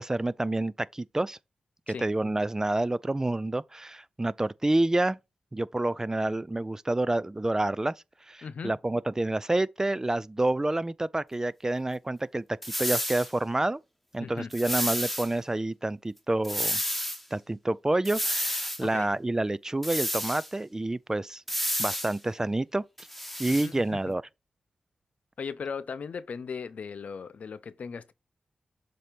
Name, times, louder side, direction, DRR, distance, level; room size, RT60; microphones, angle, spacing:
voice 1, 0.0-1.4 1.9-5.2 5.5-7.9 8.3-12.4 12.8-13.8 14.1-16.8 17.3-21.4 21.8-22.8 23.4-24.2, right 2 dB, 20° right, 0.4 m, -28 dB
voice 2, 8.4-8.7 14.2-14.5 18.8-19.1 23.5-23.8 25.4-28.1, left 5 dB, 70° left, 0.6 m, -37 dB
sound 1, 12.6-13.3 14.5-15.3 16.4-17.2 18.0-18.8 19.8-20.5 21.5-22.1 23.0-23.7, equal, 5° left, 1.1 m, -30 dB
7.5 x 2.8 x 5.1 m
cardioid pair, 50°, 2 cm